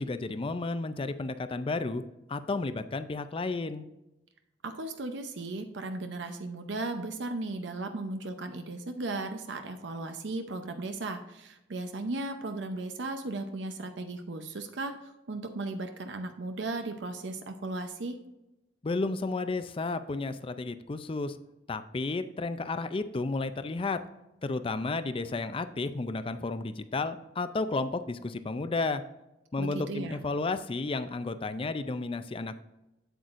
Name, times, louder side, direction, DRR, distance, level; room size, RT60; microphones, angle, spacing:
voice 1, 0.0-2.0 2.3-3.9 18.8-21.4 21.7-24.0 24.4-29.0 29.5-32.6, left 3 dB, 30° left, 11 dB, 0.4 m, -32 dB
voice 2, 4.6-18.2 29.6-30.2, right 2 dB, 70° right, 6 dB, 0.7 m, -36 dB
8.0 x 7.9 x 2.5 m, 0.96 s
head